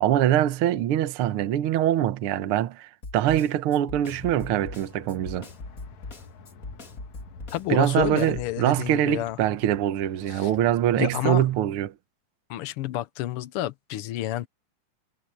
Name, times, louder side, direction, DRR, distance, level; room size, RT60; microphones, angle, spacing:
voice 1, 0.0-5.5 7.7-11.9, right 12 dB, 60° right, 1.5 m, -23 dB
Snare drum, 3.0-8.5, left 2 dB, 30° left, 2.8 m, -40 dB
sound 1, 4.0-11.6, left 4 dB, 70° left, 3.0 m, -49 dB
voice 2, 7.5-9.4 10.3-10.5 11.0-11.4 12.5-14.5, left 14 dB, 85° left, 1.2 m, -29 dB
omnidirectional pair, 3.5 m